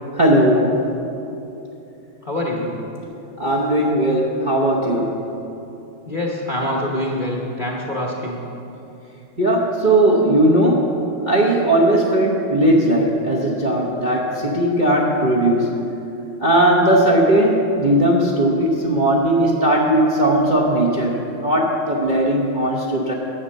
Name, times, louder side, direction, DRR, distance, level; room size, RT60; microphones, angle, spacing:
voice 1, 0.2-0.9 3.4-5.2 9.4-11.0 11.3-15.7 16.4-23.1, right 1 dB, 35° right, -4 dB, 0.7 m, -17 dB
voice 2, 2.2-2.7 6.0-8.4, left 1 dB, 35° left, -2 dB, 0.9 m, -25 dB
10.0 x 7.9 x 6.6 m, 2.9 s
omnidirectional pair, 2.1 m